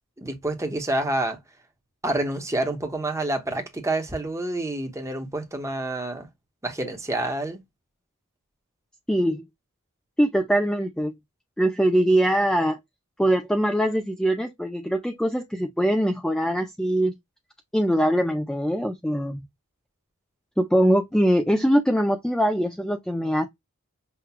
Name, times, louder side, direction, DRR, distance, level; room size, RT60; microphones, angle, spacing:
voice 1, 0.2-1.4 2.0-6.3 6.6-7.6, right 2 dB, 15° right, 0.9 m, -28 dB
voice 2, 9.1-9.5 10.2-11.1 11.6-12.8 13.2-17.1 17.7-19.5 20.6-23.5, equal, 5° left, 0.4 m, -22 dB
5.8 x 2.2 x 2.2 m
head